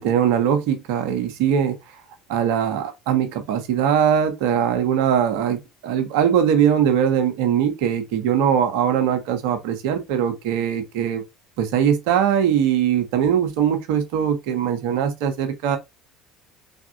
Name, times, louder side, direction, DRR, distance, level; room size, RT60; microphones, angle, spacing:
voice 1, 0.0-1.8 2.3-11.2 11.6-15.8, right 9 dB, 65° right, 0.7 m, -21 dB
3.5 x 2.5 x 2.6 m
hypercardioid pair, 65°, 0 cm